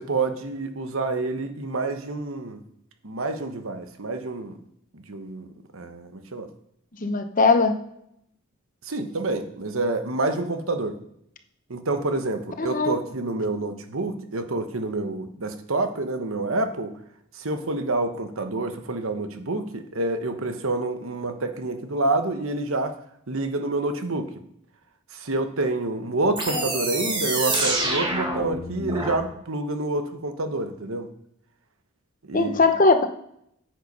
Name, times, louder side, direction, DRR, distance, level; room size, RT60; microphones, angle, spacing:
voice 1, 0.0-2.6 3.0-4.5 4.9-5.5 5.7-6.5 8.9-11.0 11.7-16.9 17.3-22.9 23.3-24.3 25.1-31.1 32.3-32.6, right 2 dB, 70° right, 8 dB, 1.1 m, -28 dB
voice 2, 7.0-7.7 12.6-12.9 26.5-26.6 32.3-33.1, left 3 dB, 40° left, 8 dB, 0.9 m, -20 dB
sound 1, 26.4-29.2, right 2 dB, 20° right, 1.8 m, -27 dB
9.4 x 7.8 x 5.4 m, 0.73 s
head